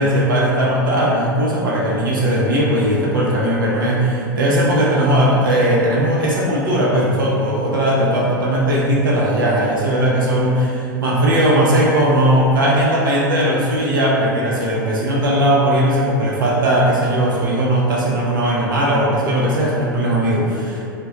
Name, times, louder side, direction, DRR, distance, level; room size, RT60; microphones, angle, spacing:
voice 1, 0.0-20.9, right 1 dB, 70° right, -4 dB, 0.6 m, -18 dB
5.2 x 2.2 x 2.7 m, 2.7 s
figure-of-eight pair, 85°, 11 cm